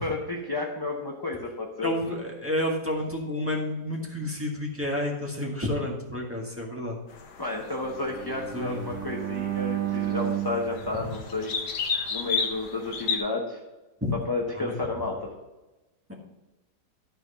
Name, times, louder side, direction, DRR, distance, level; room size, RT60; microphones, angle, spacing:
voice 1, 0.0-1.9 7.4-11.5 12.1-13.6 14.3-15.3, left 3 dB, 20° left, -1 dB, 0.6 m, -31 dB
voice 2, 1.8-7.0 8.5-8.8 14.0-14.1 14.6-14.7 16.1-16.2, left 1 dB, 10° right, -2 dB, 1.5 m, -30 dB
sound 1, 7.1-13.2, left 5 dB, 65° left, 1.5 m, -33 dB
Bowed string instrument, 7.8-12.0, right 13 dB, 75° right, 1.2 m, -33 dB
12.5 x 4.5 x 5.6 m, 1.1 s
omnidirectional pair, 1.8 m